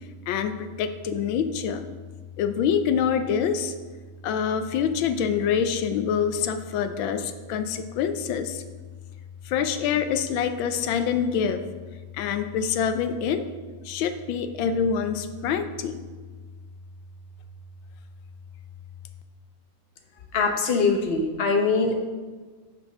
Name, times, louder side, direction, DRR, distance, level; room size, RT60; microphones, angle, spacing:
voice 1, 0.3-1.9 2.4-3.7 4.2-8.6 9.5-11.6 12.2-13.5 13.9-16.0, left 7 dB, 80° left, 9 dB, 1.3 m, -26 dB
voice 2, 20.3-22.0, left 4 dB, 55° left, 3 dB, 0.7 m, -22 dB
6.2 x 5.3 x 5.5 m, 1.4 s
omnidirectional pair, 2.2 m